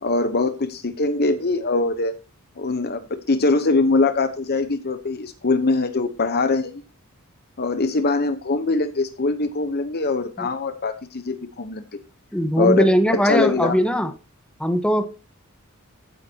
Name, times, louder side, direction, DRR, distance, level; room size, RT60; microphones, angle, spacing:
voice 1, 0.0-2.1 2.6-3.0 3.3-6.8 7.6-12.0 12.6-13.7, left 3 dB, 45° left, 10 dB, 0.9 m, -22 dB
voice 2, 12.3-14.1 14.6-15.1, equal, 5° left, 8 dB, 1.3 m, -20 dB
14.5 x 9.7 x 2.8 m, 0.31 s
head